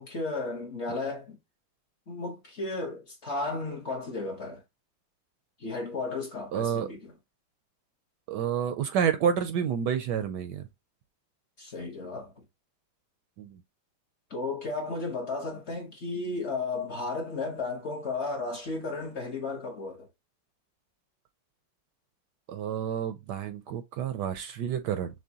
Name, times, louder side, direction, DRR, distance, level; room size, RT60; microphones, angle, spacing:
voice 1, 0.0-1.4 2.1-4.6 5.6-7.1 11.6-12.3 14.3-20.1, left 3 dB, 45° left, 1.1 m, -34 dB
voice 2, 6.5-6.9 8.3-10.6 13.4-13.6 22.5-25.1, right 8 dB, 75° right, 1.1 m, -29 dB
6.1 x 2.2 x 2.8 m
omnidirectional pair, 2.1 m